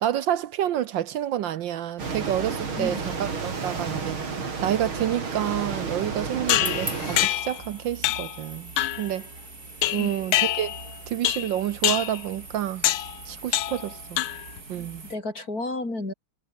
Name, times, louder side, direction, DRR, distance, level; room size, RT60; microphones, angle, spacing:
voice 1, 0.0-4.2 4.6-8.7 9.0-9.3 9.9-10.8 11.1-12.9 13.2-14.2 14.7-15.1, right 11 dB, 70° right, 1.4 m, -28 dB
sound 1, 2.0-7.3, right 4 dB, 85° right, 4.4 m, -31 dB
sound 2, 6.5-7.6 8.0-8.4 8.8-9.1 9.8-10.9 11.2-11.5 11.8-12.2 12.8-13.1 13.5-13.9 14.2-14.6, left 14 dB, 85° left, 1.6 m, -25 dB
sound 3, 6.5-15.1, right 3 dB, 45° right, 5.0 m, -41 dB
voice 2, 14.7-16.1, left 2 dB, 45° left, 6.6 m, -32 dB
omnidirectional pair, 2.2 m